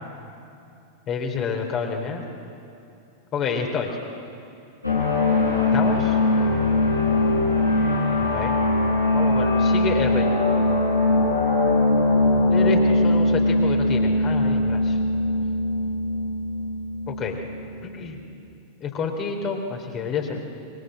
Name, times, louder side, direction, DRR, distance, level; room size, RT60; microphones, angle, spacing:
voice 1, 1.1-2.2 3.3-3.9 5.7-6.2 8.3-8.6 8.9-10.3 12.5-15.0 17.1-17.4 17.8-18.2 18.8-20.4, left 5 dB, 30° left, 2 dB, 3.3 m, -28 dB
sound 1, 4.8-17.9, left 2 dB, 85° left, 5.3 m, -21 dB
26.0 x 22.5 x 7.7 m, 2.6 s
figure-of-eight pair, 90°, 0 cm